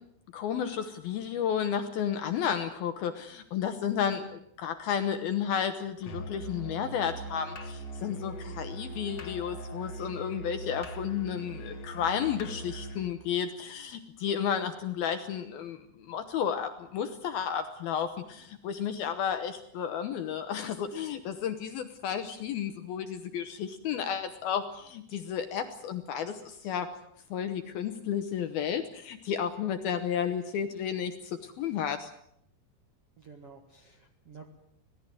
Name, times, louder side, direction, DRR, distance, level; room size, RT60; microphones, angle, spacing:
voice 1, 0.3-26.9 27.3-32.1, left 8 dB, 70° left, 8 dB, 2.5 m, -32 dB
Musical instrument, 6.0-13.2, right 1 dB, 45° left, 2.7 m, -41 dB
voice 2, 33.2-34.4, right 5 dB, 55° right, 4 dB, 1.7 m, -51 dB
25.5 x 18.5 x 7.8 m, 0.73 s
omnidirectional pair, 5.5 m